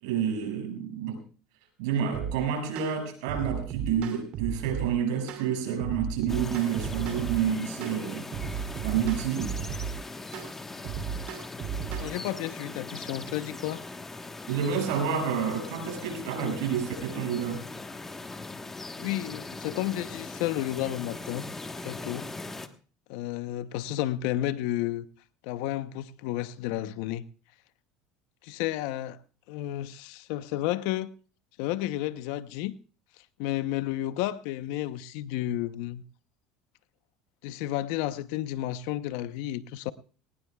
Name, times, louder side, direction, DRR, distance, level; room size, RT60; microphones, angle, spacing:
voice 1, 0.0-1.2 1.8-8.2 8.8-9.5 14.5-17.7, right 8 dB, 80° right, 6.2 m, -29 dB
sound 1, 2.1-2.3 2.8-2.9 3.3-4.9 5.3-5.5 5.8-7.4 7.8-8.0 8.3-9.9 10.3-10.5 10.8-12.1, right 8 dB, 60° right, 2.8 m, -34 dB
sound 2, 6.3-22.7, left 3 dB, 15° left, 1.3 m, -40 dB
voice 2, 11.9-13.8 19.0-21.4 21.8-22.3 23.1-25.1 25.4-27.2 28.4-29.2 29.5-31.1 31.6-32.7 33.4-36.0 37.4-39.9, left 14 dB, 75° left, 0.8 m, -32 dB
19.5 x 19.5 x 2.4 m
supercardioid pair, 115°, 2 cm